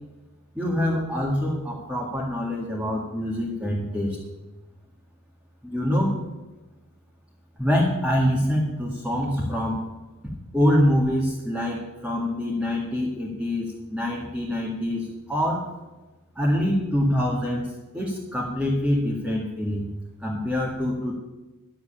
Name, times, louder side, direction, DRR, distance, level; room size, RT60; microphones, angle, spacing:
voice 1, 0.5-4.2 5.6-6.2 7.6-9.8 10.5-15.6 16.4-17.7 17.9-19.9 20.2-21.1, equal, 5° right, -4 dB, 2.1 m, -25 dB
11.5 x 8.0 x 8.9 m, 1.1 s
head